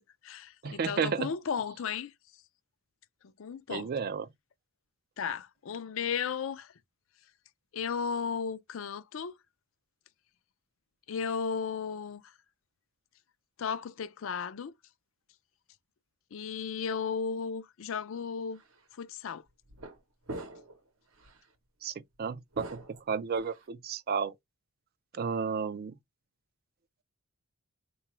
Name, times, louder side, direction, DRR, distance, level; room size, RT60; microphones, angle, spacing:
voice 1, 0.0-2.1 3.4-3.9 5.2-6.7 7.7-9.4 11.1-12.3 13.6-14.7 16.3-18.6 19.0-19.4, left 6 dB, 60° left, 0.4 m, -35 dB
voice 2, 0.6-1.3 3.7-4.3 21.8-24.3 25.1-25.9, right 6 dB, 45° right, 0.3 m, -32 dB
sound 1, 18.6-18.8 19.7-20.0 20.3-20.8 21.2-21.4 22.5-23.6, right 1 dB, 65° right, 0.8 m, -43 dB
3.9 x 2.3 x 2.9 m
head